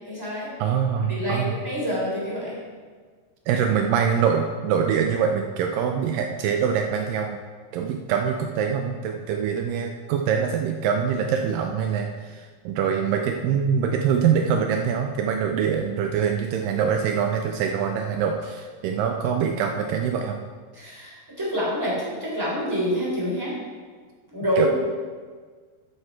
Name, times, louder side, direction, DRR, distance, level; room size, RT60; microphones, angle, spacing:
voice 1, 0.1-0.5 1.1-2.6 20.7-23.5 24.3-24.7, equal, 5° right, -6 dB, 3.0 m, -27 dB
voice 2, 0.6-1.5 3.5-7.4 7.7-20.4 24.6-24.7, right 7 dB, 90° right, 3 dB, 1.9 m, -24 dB
12.5 x 6.6 x 4.7 m, 1.5 s
omnidirectional pair, 4.6 m